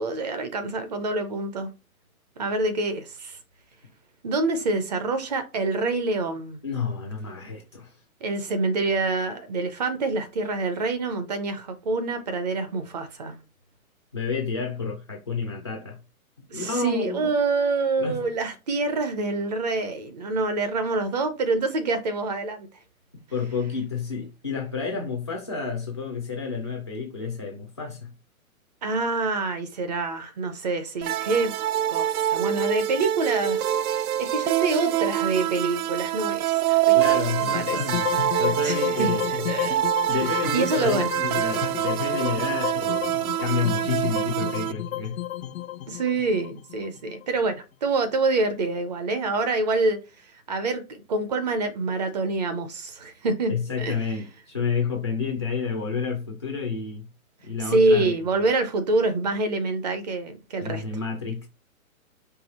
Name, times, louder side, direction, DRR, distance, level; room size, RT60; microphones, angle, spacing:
voice 1, 0.0-1.7 2.4-3.4 4.2-6.6 8.2-13.4 16.5-22.7 28.8-31.5 31.9-33.6 33.9-37.8 38.3-39.2 39.5-39.8 40.5-41.1 43.2-43.3 45.9-53.5 53.8-53.9 57.6-60.8, right 3 dB, 30° right, 0.5 m, -26 dB
voice 2, 6.6-8.0 14.1-16.0 16.5-17.3 18.0-18.2 23.3-28.1 36.9-39.5 40.1-43.1 43.4-45.2 53.5-57.1 57.4-58.1 58.4-58.5 60.6-61.5, left 5 dB, 20° left, 0.3 m, -30 dB
sound 1, 31.0-44.7, right 12 dB, 85° right, 0.5 m, -25 dB
sound 2, 37.4-47.6, left 13 dB, 70° left, 0.6 m, -32 dB
4.7 x 2.8 x 4.1 m
hypercardioid pair, 150°, 42 cm